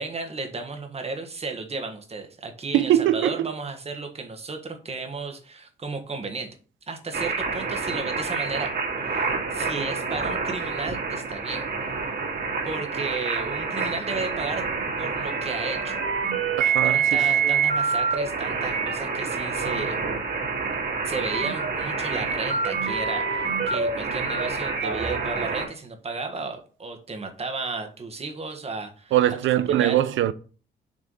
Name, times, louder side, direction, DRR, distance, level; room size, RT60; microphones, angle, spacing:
voice 1, 0.0-6.6 6.9-8.7 9.0-11.7 12.6-16.0 16.8-20.0 21.0-29.1 29.6-30.0, right 3 dB, 30° right, 1.5 m, -34 dB
voice 2, 2.7-3.5 16.6-17.6 29.1-30.3, right 12 dB, 75° right, 0.6 m, -22 dB
sound 1, 7.1-25.7, right 5 dB, 55° right, 2.5 m, -27 dB
6.3 x 3.5 x 5.5 m
cardioid pair, 90°, 20 cm